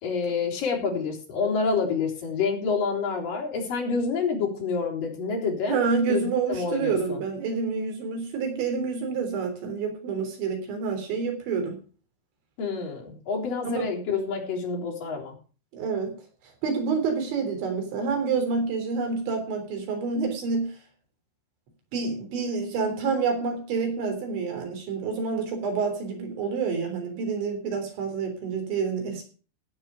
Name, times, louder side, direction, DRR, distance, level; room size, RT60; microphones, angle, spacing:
voice 1, 0.0-5.8 6.1-7.2 12.6-15.4, left 5 dB, 50° left, -2 dB, 5.2 m, -28 dB
voice 2, 5.7-11.8 13.6-13.9 15.7-16.2 16.6-20.7 21.9-29.2, right 5 dB, 85° right, 4 dB, 5.9 m, -28 dB
17.0 x 8.3 x 4.9 m, 0.38 s
omnidirectional pair, 5.1 m